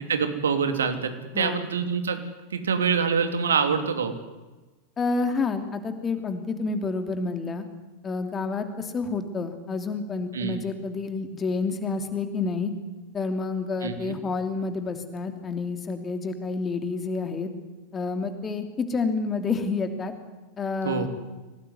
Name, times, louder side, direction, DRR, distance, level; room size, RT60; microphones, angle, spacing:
voice 1, 0.0-2.2 2.5-4.1 10.3-10.6 13.8-14.2 20.8-21.1, right 6 dB, 65° right, 7 dB, 3.0 m, -25 dB
voice 2, 1.3-1.7 5.0-7.7 8.0-12.7 13.1-17.5 17.9-20.1 20.6-21.1, left 4 dB, 20° left, 7 dB, 3.0 m, -29 dB
26.0 x 19.0 x 9.8 m, 1.2 s
figure-of-eight pair, 90°, 0 cm